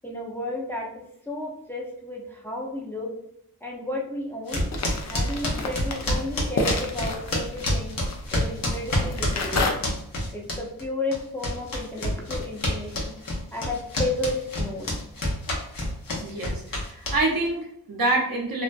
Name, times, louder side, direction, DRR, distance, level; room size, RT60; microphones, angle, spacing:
voice 1, 0.0-3.1 3.6-4.6 5.0-8.0 8.3-9.8 10.3-13.2 13.5-15.0, left 1 dB, 5° left, -3 dB, 0.6 m, -33 dB
sound 1, 4.5-10.8 11.1-17.5, left 1 dB, 70° left, 0.8 m, -28 dB
sound 2, 4.7-9.7, left 2 dB, 50° left, 0.5 m, -31 dB
voice 2, 16.2-18.6, right 2 dB, 70° right, -1 dB, 0.7 m, -26 dB
2.5 x 2.1 x 2.4 m, 0.73 s
cardioid pair, 50°, 35 cm